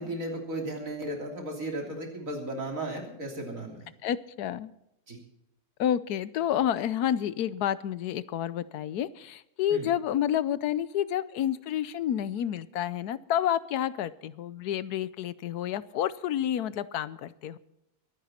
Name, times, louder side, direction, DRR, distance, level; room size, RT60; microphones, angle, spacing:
voice 1, 0.0-3.9 5.1-5.2 9.7-9.9, right 1 dB, 55° right, 2 dB, 3.6 m, -35 dB
voice 2, 4.0-4.7 5.8-17.6, left 10 dB, 75° left, 17 dB, 1.2 m, -29 dB
23.0 x 10.0 x 4.3 m, 0.83 s
omnidirectional pair, 1.7 m